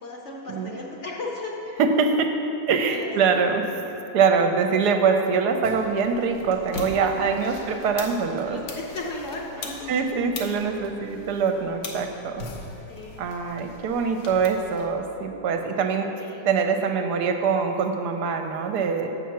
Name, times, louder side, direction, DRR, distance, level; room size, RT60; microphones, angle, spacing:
voice 1, 0.0-1.6 2.9-3.6 7.0-7.6 8.4-9.9 12.9-13.3 16.1-16.5, left 2 dB, 55° left, -2 dB, 0.9 m, -36 dB
voice 2, 1.8-2.3 2.7-3.6 4.1-8.6 9.9-12.4 13.2-16.1 16.4-19.1, right 5 dB, 75° right, 5 dB, 1.1 m, -23 dB
sound 1, 5.6-14.9, left 3 dB, 85° left, 1.5 m, -40 dB
7.4 x 5.7 x 5.8 m, 3.0 s
omnidirectional pair, 1.8 m